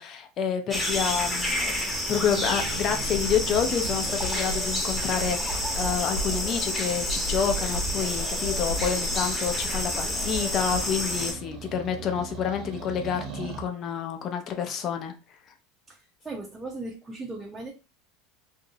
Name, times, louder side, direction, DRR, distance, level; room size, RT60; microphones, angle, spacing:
voice 1, 0.0-1.7 2.1-15.1, left 8 dB, 45° left, 0.5 m, -28 dB
sound 1, 0.7-11.3, left 1 dB, 5° left, 0.9 m, -29 dB
sound 2, 2.1-4.3 7.6-13.7, right 6 dB, 55° right, 0.8 m, -41 dB
sound 3, 2.4-10.8, left 1 dB, 85° right, 0.8 m, -36 dB
voice 2, 15.9-17.7, right 2 dB, 15° right, 0.5 m, -38 dB
2.6 x 2.0 x 2.6 m
supercardioid pair, 100°, 0 cm